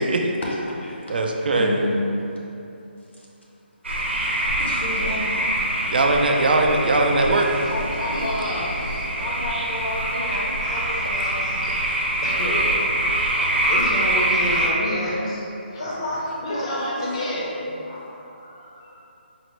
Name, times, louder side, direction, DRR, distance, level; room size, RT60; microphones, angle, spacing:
voice 1, 0.4-1.1 1.5-2.2 3.1-3.3 3.9-4.0 4.4-5.5 7.7-8.2 9.2-11.5 15.8-17.5, left 1 dB, 85° left, -4 dB, 0.9 m, -31 dB
voice 2, 1.1-1.9 5.9-7.5, right 2 dB, 55° right, 2 dB, 0.3 m, -20 dB
sound 1, 3.8-14.7, right 1 dB, 85° right, 0.7 m, -24 dB
voice 3, 8.0-9.1 10.6-10.8 11.4-11.7 12.2-15.4 15.7-19.0, left 1 dB, 30° left, -5 dB, 0.6 m, -30 dB
4.1 x 2.0 x 3.0 m, 2.8 s
hypercardioid pair, 170°, 6 cm